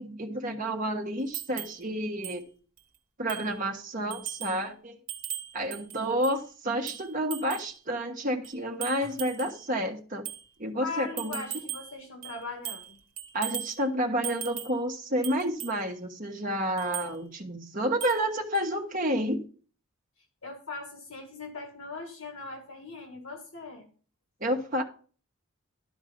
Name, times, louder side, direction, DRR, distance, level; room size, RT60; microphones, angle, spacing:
voice 1, 0.0-2.5 3.2-5.0 5.5-10.3 10.6-11.4 13.3-19.5 24.4-24.8, right 1 dB, 40° right, 1.3 m, -30 dB
sound 1, 1.3-1.8 2.2-2.4 2.8-2.9 3.3-3.6 4.1-4.6 5.1-6.4 6.9-7.7 8.4-9.6 10.3-10.4 11.2-11.9 12.2-12.9 13.2-13.8 14.2-14.8 15.2-15.8 16.8-17.1 18.0-18.3 18.5-18.7, right 10 dB, 75° right, 1.2 m, -38 dB
voice 2, 10.8-13.0 20.4-23.9, left 3 dB, 70° left, 1.9 m, -40 dB
12.5 x 4.6 x 5.3 m
head